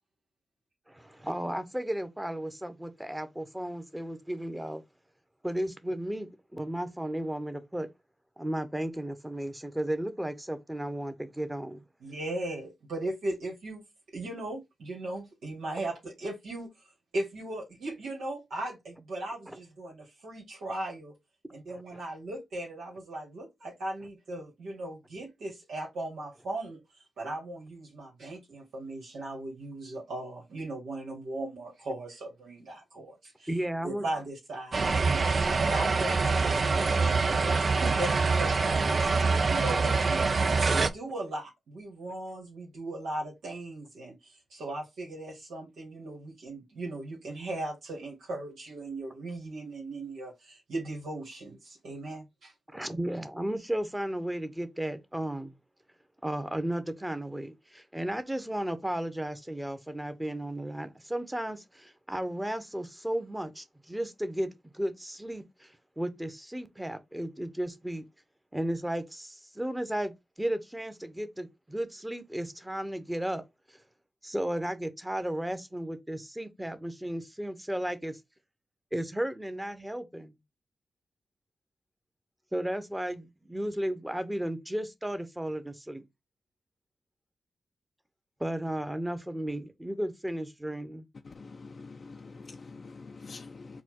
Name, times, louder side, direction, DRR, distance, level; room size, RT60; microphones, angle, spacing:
voice 1, 0.9-4.8 5.4-7.9 8.4-11.8 19.5-19.6 21.7-22.0 33.5-34.0 52.7-55.5 56.2-68.0 68.5-73.4 74.2-78.2 78.9-80.4 82.5-86.0 88.4-91.0, right 1 dB, 10° right, 0.9 m, -34 dB
voice 2, 12.0-13.8 14.1-16.7 17.1-21.1 21.5-26.8 27.2-33.5 33.8-44.1 44.5-52.5, right 2 dB, 85° right, 1.4 m, -38 dB
sound 1, 34.7-40.9, right 4 dB, 55° right, 0.4 m, -25 dB
voice 3, 91.2-93.8, left 4 dB, 55° left, 0.4 m, -46 dB
4.2 x 2.3 x 4.4 m
supercardioid pair, 45°, 0 cm